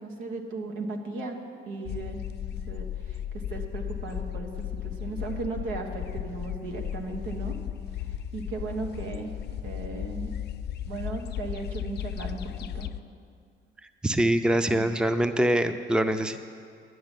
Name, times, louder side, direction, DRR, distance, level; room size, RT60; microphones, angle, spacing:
voice 1, 0.0-2.2 2.7-7.6 8.0-9.3 9.6-10.3 10.8-12.9 14.7-14.9, right 3 dB, 90° right, 3 dB, 1.5 m, -36 dB
sound 1, 1.8-13.0, left 10 dB, 55° left, 0.5 m, -35 dB
voice 2, 14.0-16.4, right 1 dB, 5° right, 9 dB, 0.5 m, -24 dB
10.5 x 7.7 x 9.0 m, 2.2 s
cardioid pair, 90°, 20 cm